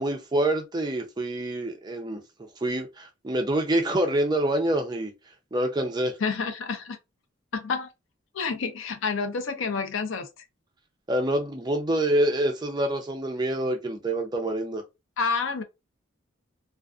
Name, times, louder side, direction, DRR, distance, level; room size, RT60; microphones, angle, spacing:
voice 1, 0.0-2.2 2.6-5.1 5.5-6.2 11.1-14.8, right 1 dB, 20° right, 0.5 m, -26 dB
voice 2, 6.2-7.0 7.5-7.9 8.3-10.4 15.2-15.6, left 5 dB, 80° left, 0.5 m, -29 dB
2.4 x 2.4 x 2.3 m
head